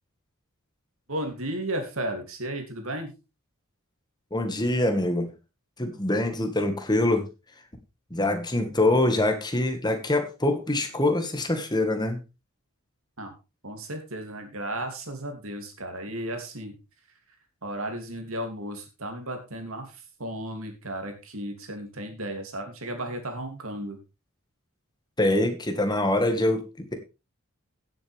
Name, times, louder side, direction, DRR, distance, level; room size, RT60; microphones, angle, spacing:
voice 1, 1.1-3.1 8.6-8.7 13.2-13.3 13.6-16.7 17.6-24.0, right 1 dB, 65° right, 5 dB, 2.9 m, -34 dB
voice 2, 4.3-5.3 5.8-7.3 8.1-12.2 25.2-26.9, left 1 dB, 20° left, 6 dB, 1.7 m, -24 dB
16.5 x 7.8 x 3.5 m, 0.28 s
head